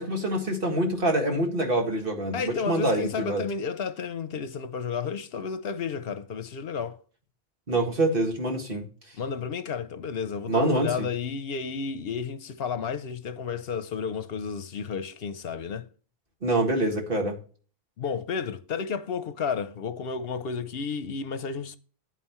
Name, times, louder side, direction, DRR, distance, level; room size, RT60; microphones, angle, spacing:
voice 1, 0.0-3.5 7.7-8.9 10.5-11.1 16.4-17.4, right 1 dB, 60° right, 2.1 m, -26 dB
voice 2, 2.3-7.0 9.2-15.9 18.0-21.8, left 6 dB, 70° left, 0.9 m, -32 dB
9.2 x 9.0 x 3.1 m
omnidirectional pair, 1.0 m